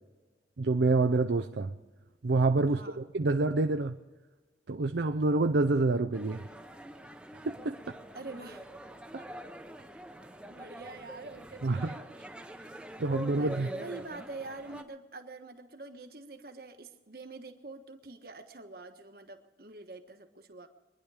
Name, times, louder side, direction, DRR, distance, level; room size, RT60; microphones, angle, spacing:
voice 1, 0.6-1.7 2.2-4.0 4.7-6.5 7.4-7.8 11.6-11.9 13.0-13.7, right 3 dB, 75° right, 0.6 m, -27 dB
voice 2, 2.7-3.0 8.1-8.7 9.2-9.3 10.5-12.0 13.4-20.7, right 3 dB, 55° right, 1.4 m, -45 dB
sound 1, 6.1-14.8, right 1 dB, 5° right, 0.8 m, -45 dB
24.0 x 10.5 x 4.9 m
head